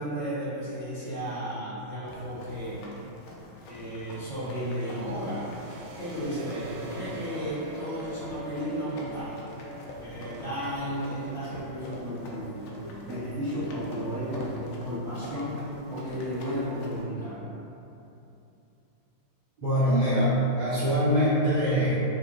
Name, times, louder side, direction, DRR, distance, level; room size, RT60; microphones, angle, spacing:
voice 1, 0.0-2.9 3.7-5.5 5.9-9.4 10.0-15.6 15.9-17.4, equal, 20° right, -13 dB, 1.0 m, -33 dB
Run, 2.0-17.0, left 1 dB, 75° left, 1.4 m, -46 dB
sound 1, 4.4-16.1, right 1 dB, 75° right, 1.1 m, -45 dB
voice 2, 19.6-21.9, equal, 40° right, -13 dB, 0.6 m, -23 dB
5.0 x 3.4 x 2.2 m, 2.8 s
omnidirectional pair, 2.4 m